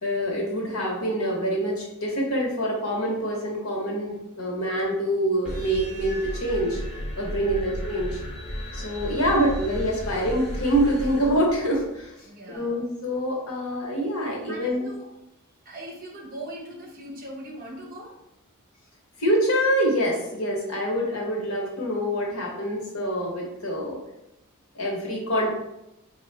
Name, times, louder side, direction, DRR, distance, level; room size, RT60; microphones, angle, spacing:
voice 1, 0.0-6.8 7.2-8.2 8.7-12.1 12.5-14.9 19.2-24.0 24.7-25.5, equal, 75° left, -1 dB, 1.0 m, -25 dB
sound 1, 5.4-12.0, equal, 5° right, 1.0 m, -34 dB
voice 2, 7.3-7.6 12.2-12.8 14.5-15.1 15.6-18.2, right 1 dB, 40° right, -2 dB, 0.9 m, -40 dB
4.2 x 2.3 x 3.2 m, 0.88 s
head